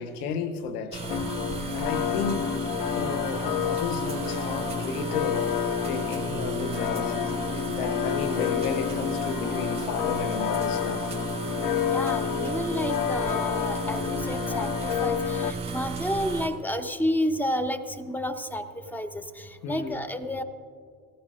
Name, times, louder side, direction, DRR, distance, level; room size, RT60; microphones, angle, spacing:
voice 1, 0.0-2.5 2.9-5.6 5.8-7.2 7.5-11.1 19.6-20.0, left 5 dB, 80° left, 1.1 m, -33 dB
sound 1, 0.9-16.5, right 5 dB, 15° right, 2.3 m, -34 dB
sound 2, 1.1-15.5, left 10 dB, 55° left, 0.7 m, -29 dB
Bass guitar, 6.3-14.4, left 3 dB, 30° left, 3.7 m, -45 dB
voice 2, 11.9-18.6 18.9-20.4, equal, 5° left, 0.7 m, -30 dB
18.5 x 14.5 x 2.5 m
hypercardioid pair, 80°, 44 cm